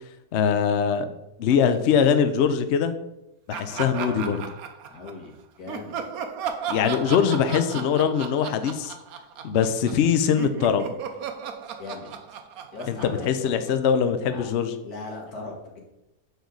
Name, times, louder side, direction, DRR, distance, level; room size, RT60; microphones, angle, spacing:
voice 1, 0.3-1.1 1.4-3.0 3.5-4.4 6.7-8.9 9.4-10.9 12.9-14.7, left 7 dB, 85° left, 9 dB, 0.6 m, -22 dB
Laughter, 3.5-5.3 5.7-10.1 10.4-13.9, right 7 dB, 65° right, 1.0 m, -35 dB
voice 2, 3.6-4.3 4.9-5.9 11.8-12.1 12.7-13.4 14.3-14.5 14.8-15.8, left 3 dB, 60° left, -1 dB, 2.1 m, -39 dB
6.7 x 5.0 x 3.8 m, 0.87 s
omnidirectional pair, 1.9 m